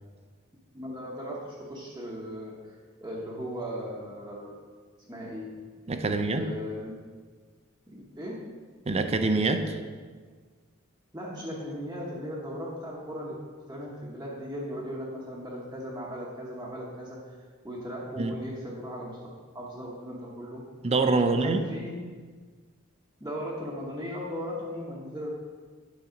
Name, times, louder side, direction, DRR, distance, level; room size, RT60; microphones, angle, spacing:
voice 1, 0.7-4.5 5.1-5.6 6.0-6.9 7.9-8.5 11.1-13.4 13.7-17.4 17.6-19.2 19.5-20.7 21.2-21.9 23.2-25.3, equal, 15° right, -6 dB, 1.0 m, -37 dB
voice 2, 5.9-6.5 8.9-9.8 18.2-18.4 20.8-21.7, right 3 dB, 30° right, 7 dB, 0.5 m, -25 dB
9.1 x 4.1 x 5.1 m, 1.5 s
head